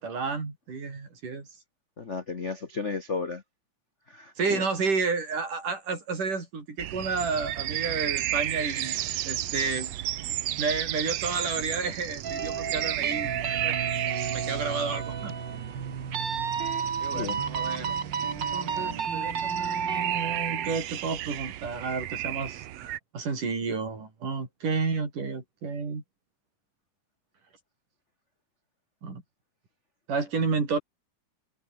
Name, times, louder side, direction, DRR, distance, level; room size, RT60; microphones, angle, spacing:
voice 1, 0.0-1.5 4.4-9.0 9.3-9.9 10.3-13.8 14.2-15.4 17.0-18.0 18.3-26.0 29.0-29.2 30.1-30.8, right 4 dB, 85° right, 7.4 m, -31 dB
voice 2, 2.0-3.4 4.1-4.7 17.1-17.4, left 4 dB, 75° left, 0.6 m, -33 dB
sound 1, 6.8-23.0, right 13 dB, 65° right, 1.9 m, -34 dB
sound 2, 12.2-20.8, right 6 dB, 40° right, 2.4 m, -31 dB
omnidirectional pair, 3.6 m